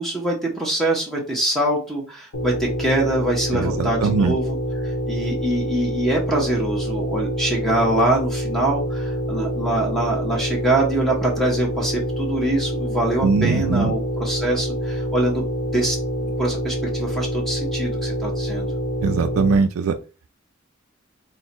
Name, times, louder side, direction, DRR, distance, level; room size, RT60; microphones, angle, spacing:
voice 1, 0.0-4.5 4.8-15.4 15.7-16.0 16.4-18.7, right 1 dB, ahead, -1 dB, 0.8 m, -24 dB
sound 1, 2.3-19.6, equal, 75° left, 0.8 m, -26 dB
voice 2, 3.5-4.4 13.2-13.9 19.0-20.0, right 5 dB, 85° right, 8 dB, 0.4 m, -21 dB
4.3 x 2.2 x 4.1 m, 0.34 s
head